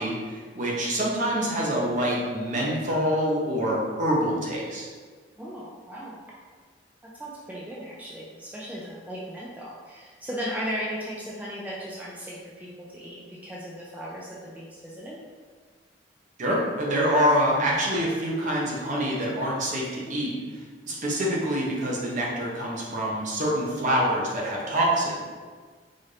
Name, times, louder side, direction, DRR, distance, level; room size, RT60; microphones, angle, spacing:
voice 1, 0.0-4.9 16.4-25.2, equal, 45° right, -3 dB, 0.8 m, -26 dB
voice 2, 5.4-6.2 7.0-15.2, equal, 10° right, -6 dB, 0.4 m, -36 dB
4.1 x 2.5 x 3.3 m, 1.5 s
head